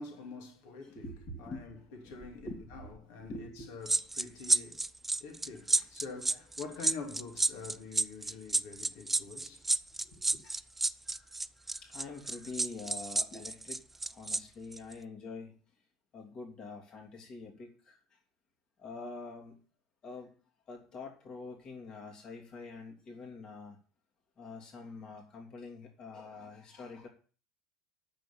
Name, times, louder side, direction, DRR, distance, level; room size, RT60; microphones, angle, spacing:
voice 1, 0.0-1.0 1.4-1.8 2.0-4.8 5.2-9.7 10.0-10.4, left 4 dB, 60° left, 3.0 m, -46 dB
voice 2, 0.8-3.7 5.7-5.9 10.4-10.6 11.0-15.7 16.1-18.2 18.8-19.6 20.0-20.4 20.7-23.8 24.4-27.1, left 3 dB, 35° left, 2.9 m, -46 dB
sound 1, 3.9-14.4 14.7-14.9, right 2 dB, 10° right, 0.5 m, -30 dB
9.1 x 6.9 x 7.2 m
figure-of-eight pair, 75°, 2 cm